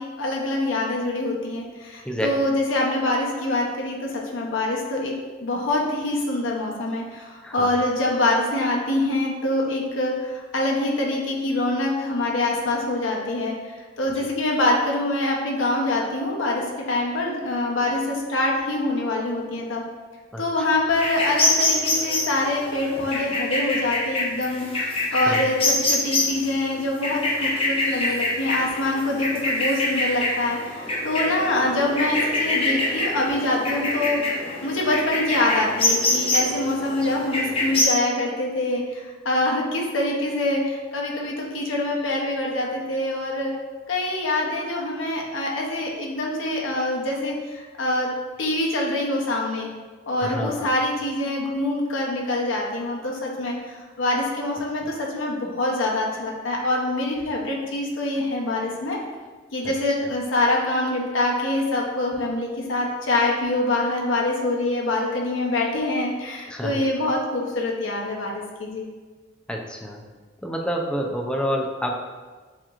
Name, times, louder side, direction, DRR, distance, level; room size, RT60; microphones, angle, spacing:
voice 1, 0.0-5.1 5.4-13.5 14.0-19.8 20.4-34.2 34.6-43.5 43.9-48.1 48.4-49.7 50.1-59.0 59.5-68.9, left 2 dB, 85° left, -1 dB, 0.8 m, -25 dB
sound 1, 21.0-37.8, left 2 dB, 30° left, 0.9 m, -25 dB
voice 2, 50.2-50.7 66.5-66.8 69.5-70.0 70.4-72.0, equal, 5° left, 0 dB, 0.4 m, -28 dB
7.3 x 2.9 x 2.4 m, 1.4 s
head